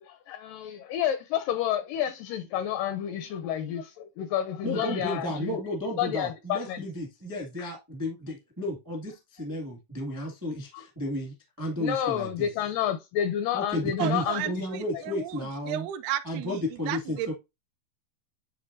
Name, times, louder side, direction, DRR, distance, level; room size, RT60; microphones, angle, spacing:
voice 1, 0.0-5.6 6.0-6.8 7.6-7.7 10.7-10.9 11.8-14.7, left 10 dB, 80° left, 1.9 m, -30 dB
voice 2, 4.6-12.5 13.5-15.9 16.2-17.3, left 1 dB, 25° right, 0.4 m, -33 dB
voice 3, 14.0-15.4 15.7-17.3, right 13 dB, 85° right, 2.4 m, -33 dB
10.5 x 3.5 x 2.6 m
omnidirectional pair, 4.4 m